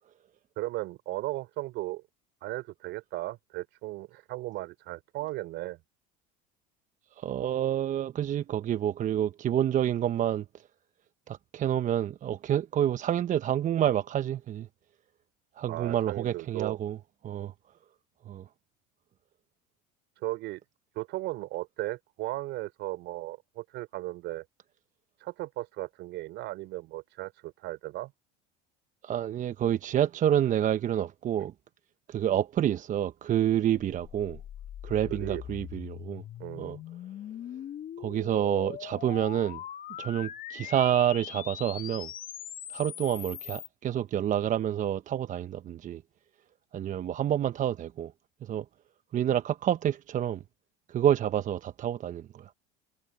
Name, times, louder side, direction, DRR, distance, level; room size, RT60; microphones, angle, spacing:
voice 1, 0.6-2.0 2.4-5.8 15.7-16.8 20.2-20.6 20.9-24.4 25.2-28.1 35.0-35.4 36.4-36.8, right 18 dB, 60° right, 4.7 m, -36 dB
voice 2, 7.2-10.5 11.3-14.7 15.6-17.0 17.2-17.5 18.3-18.4 29.0-31.5 32.1-34.4 34.8-36.2 36.6-36.8 38.0-39.6 40.0-42.1 42.7-46.0 46.7-48.1 48.4-48.6 49.1-50.4 50.9-52.5, right 10 dB, 40° right, 0.9 m, -28 dB
sound 1, 33.8-43.7, left 11 dB, 45° left, 1.6 m, -41 dB
hypercardioid pair, 85°, 20 cm